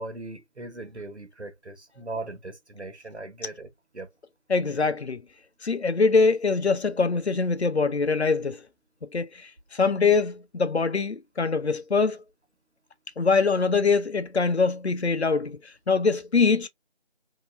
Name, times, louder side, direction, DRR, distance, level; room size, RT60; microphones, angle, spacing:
voice 1, 0.0-4.1, right 2 dB, 85° right, 1.2 m, -39 dB
voice 2, 4.5-5.2 5.6-8.6 9.0-12.2 13.2-15.6 15.9-16.7, left 4 dB, 75° left, 0.7 m, -23 dB
3.0 x 2.9 x 2.5 m
figure-of-eight pair, 170°, 33 cm